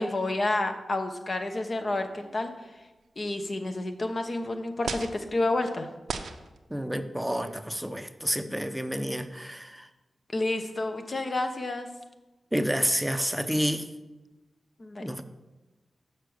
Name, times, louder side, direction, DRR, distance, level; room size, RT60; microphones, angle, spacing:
voice 1, 0.0-2.7 3.2-5.9 10.3-11.9 14.8-15.0, left 2 dB, 50° left, 6 dB, 1.0 m, -29 dB
sound 1, 1.8-2.8 3.7-3.8 4.9-5.2 6.0-6.6 7.4-7.6, right 5 dB, 90° right, 0.5 m, -38 dB
voice 2, 6.7-9.9 12.5-13.9 15.0-15.2, equal, 5° right, 9 dB, 0.6 m, -29 dB
6.6 x 5.9 x 6.3 m, 1.1 s
cardioid pair, 55°, 0 cm